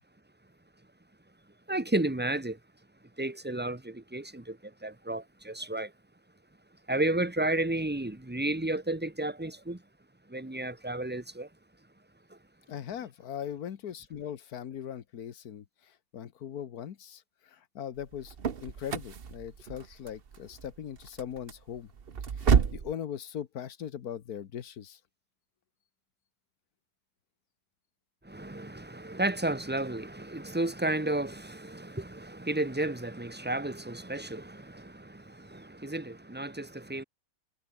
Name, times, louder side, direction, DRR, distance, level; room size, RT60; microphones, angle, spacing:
voice 1, 1.7-2.6 3.2-5.9 6.9-9.8 10.3-11.5 12.3-12.4 28.2-37.0, right 1 dB, 5° right, 1.1 m, -32 dB
voice 2, 12.7-15.6 16.1-18.3 18.6-21.9 22.7-25.0, left 9 dB, 75° left, 1.6 m, -40 dB
sound 1, 18.0-22.9, right 6 dB, 40° right, 1.1 m, -30 dB
omnidirectional pair, 1.6 m